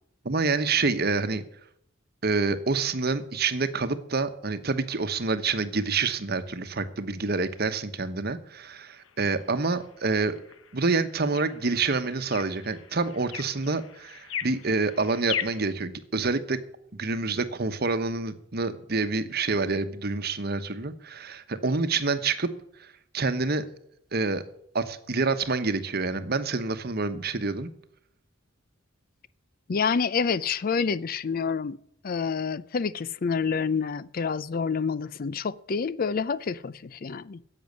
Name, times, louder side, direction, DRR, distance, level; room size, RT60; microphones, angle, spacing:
voice 1, 0.2-1.4 2.2-10.3 10.7-16.6 16.9-22.5 22.8-22.9 23.1-23.7 24.1-24.4 24.7-27.7, right 4 dB, 55° right, 1.1 m, -27 dB
sound 1, 8.6-15.7, left 9 dB, 85° left, 0.9 m, -40 dB
voice 2, 29.7-31.8 32.0-37.4, left 5 dB, 45° left, 0.5 m, -28 dB
10.5 x 7.9 x 9.4 m
head